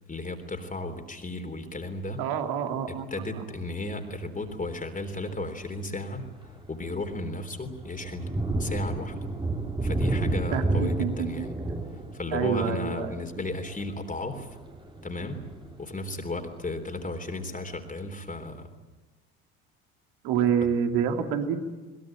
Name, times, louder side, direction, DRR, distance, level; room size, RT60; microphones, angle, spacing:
voice 1, 0.1-2.2 2.9-8.2 8.6-9.3 9.8-11.5 11.9-14.6 15.0-15.5 15.8-18.7, left 2 dB, 20° left, 4 dB, 3.6 m, -34 dB
voice 2, 2.2-3.1 3.4-3.5 10.5-11.7 12.3-13.2 20.2-21.6, right 7 dB, 60° right, 5 dB, 3.1 m, -27 dB
Thunder, 4.5-4.8 5.4-5.5 6.0-16.5, right 2 dB, 10° right, 2.8 m, -32 dB
22.0 x 21.0 x 9.0 m, 1.2 s
figure-of-eight pair, 65°, 42 cm